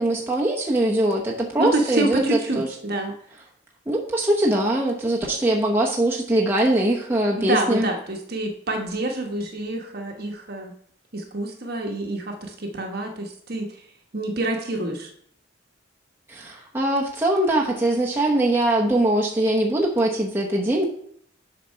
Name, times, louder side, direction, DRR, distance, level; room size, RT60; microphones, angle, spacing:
voice 1, 0.0-2.7 3.9-7.9 16.3-20.8, right 1 dB, 10° right, -2 dB, 0.9 m, -22 dB
voice 2, 1.6-3.1 7.4-10.7 11.1-13.7 14.1-15.1, right 2 dB, 50° right, 3 dB, 1.1 m, -27 dB
7.3 x 4.2 x 5.6 m, 0.63 s
head